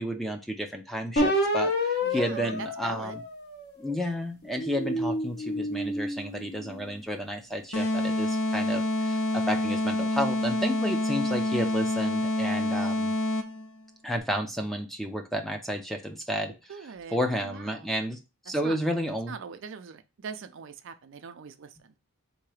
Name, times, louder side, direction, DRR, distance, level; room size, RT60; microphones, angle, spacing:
voice 1, 0.0-3.2 3.8-13.1 14.0-16.5 17.1-18.2 18.5-19.3, equal, ahead, 4 dB, 0.5 m, -31 dB
sound 1, 1.2-3.8 4.4-6.9, left 1 dB, 50° left, 1.1 m, -29 dB
voice 2, 2.0-3.2 16.7-17.9 18.6-18.8 19.3-21.9, right 6 dB, 55° right, 8 dB, 0.4 m, -42 dB
sound 2, 7.7-13.7, left 1 dB, 75° left, 0.8 m, -27 dB
3.9 x 2.8 x 4.8 m, 0.29 s
head